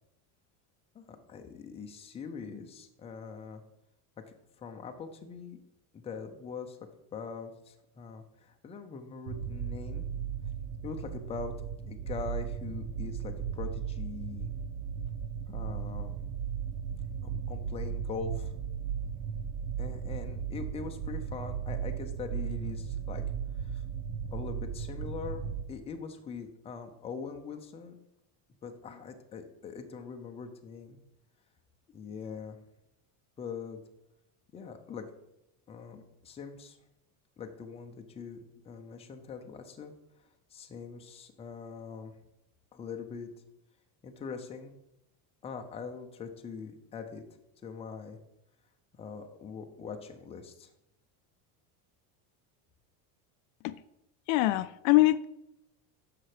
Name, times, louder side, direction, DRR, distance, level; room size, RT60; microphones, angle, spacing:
voice 1, 0.9-3.6 4.2-4.3 4.6-5.6 5.9-6.8 7.1-10.1 10.8-11.5 11.9-14.5 15.5-16.2 17.2-18.5 19.8-23.2 23.6-23.8 24.3-28.0 28.6-31.0 31.9-32.6 33.4-33.8 34.5-35.1 35.7-36.8 37.4-39.9 40.5-42.1 42.7-43.3 44.0-44.7 45.4-47.2 47.6-48.2 49.0-50.7, left 5 dB, 15° left, 0.6 m, -42 dB
sound 1, 9.3-25.6, right 7 dB, 80° right, 1.2 m, -36 dB
voice 2, 54.3-55.2, left 18 dB, 65° left, 0.5 m, -23 dB
10.0 x 6.8 x 5.0 m
cardioid pair, 170°, 45 cm